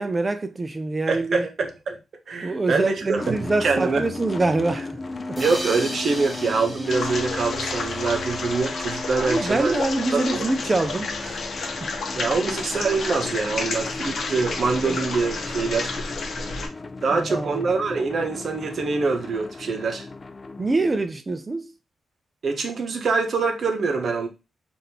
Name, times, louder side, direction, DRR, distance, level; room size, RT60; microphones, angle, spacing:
voice 1, 0.0-1.4 2.4-5.0 5.3-5.4 9.1-11.5 17.1-17.7 20.6-21.7, right 2 dB, 30° right, 0.4 m, -25 dB
voice 2, 1.1-2.0 2.3-3.3 3.6-4.0 5.4-9.7 10.1-10.5 12.2-15.9 17.0-20.1 22.4-24.3, right 4 dB, 65° right, 0.7 m, -24 dB
sound 1, 3.2-21.1, left 3 dB, 40° left, 0.3 m, -36 dB
sound 2, 5.4-8.7, equal, 5° left, 1.7 m, -37 dB
sound 3, 6.9-16.7, left 3 dB, 70° left, 0.7 m, -31 dB
3.4 x 2.5 x 2.8 m
cardioid pair, 55°, 0 cm